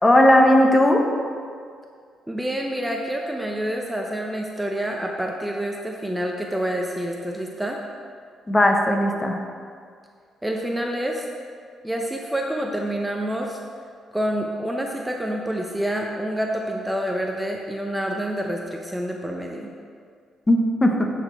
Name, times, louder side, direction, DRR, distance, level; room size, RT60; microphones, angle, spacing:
voice 1, 0.0-1.0 8.5-9.4 20.5-21.1, left 1 dB, 20° left, 2 dB, 0.9 m, -17 dB
voice 2, 2.3-7.8 10.4-11.2 11.8-13.6 14.1-19.7, right 1 dB, 5° right, 0 dB, 0.7 m, -27 dB
9.5 x 4.3 x 4.5 m, 2.1 s
cardioid pair, 90°, 0 cm